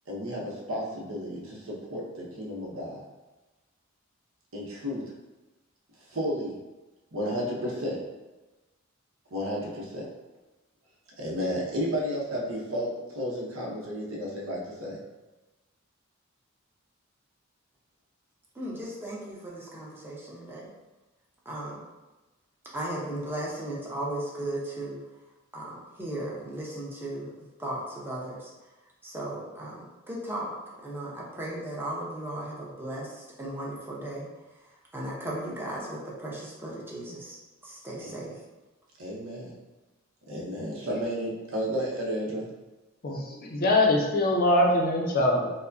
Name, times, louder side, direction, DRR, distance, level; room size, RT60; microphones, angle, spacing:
voice 1, 0.1-3.0 4.5-5.0 6.1-6.6 7.1-8.0 9.3-10.1 11.2-15.0 38.0-38.1 39.0-39.6 40.3-42.5, equal, 70° right, -3 dB, 0.9 m, -32 dB
voice 2, 18.5-20.7 21.4-21.8 22.7-25.0 25.5-27.3 27.6-28.5 29.0-30.5 30.8-34.3 34.9-37.4 37.6-38.4, right 1 dB, 10° right, -5 dB, 0.7 m, -36 dB
voice 3, 43.0-45.5, left 1 dB, 45° left, 0 dB, 0.6 m, -23 dB
4.7 x 2.1 x 2.6 m, 1.1 s
head